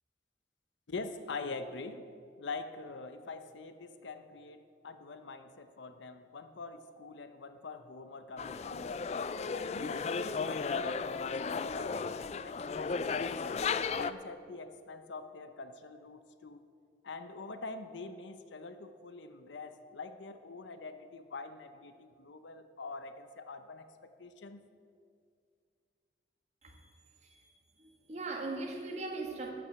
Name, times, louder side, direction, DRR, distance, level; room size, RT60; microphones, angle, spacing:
voice 1, 0.9-2.0 2.4-8.9 9.5-16.6 17.0-24.6, left 3 dB, 85° left, 9 dB, 0.7 m, -45 dB
sound 1, 8.4-14.1, left 5 dB, 35° left, 0.3 m, -35 dB
voice 2, 27.8-29.5, right 3 dB, 35° right, 1 dB, 1.5 m, -40 dB
13.0 x 6.2 x 8.1 m, 2.2 s
head